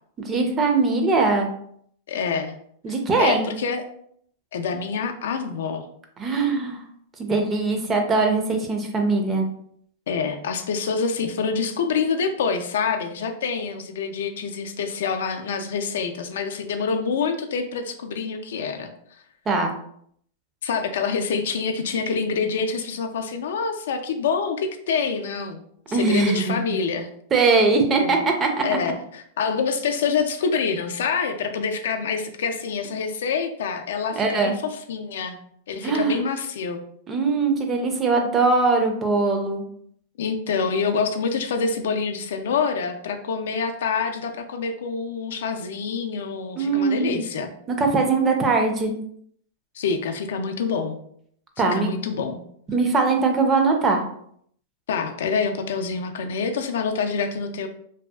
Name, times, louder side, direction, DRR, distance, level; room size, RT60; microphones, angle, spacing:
voice 1, 0.2-1.5 2.8-3.5 6.2-6.8 7.2-9.5 19.5-19.7 25.9-26.8 27.3-28.6 34.2-34.6 35.8-36.2 37.1-39.6 46.6-47.2 47.8-48.9 51.6-51.9 52.7-54.0, right 3 dB, 20° right, 3 dB, 0.4 m, -21 dB
voice 2, 2.1-2.6 3.2-3.8 4.5-5.8 10.1-18.9 20.6-25.6 25.9-27.1 28.0-28.2 28.6-35.4 35.7-36.8 40.2-47.5 49.8-51.0 51.7-52.4 54.9-57.7, left 5 dB, 80° left, 6 dB, 0.4 m, -26 dB
2.7 x 2.3 x 2.2 m, 0.66 s
supercardioid pair, 145°, 0 cm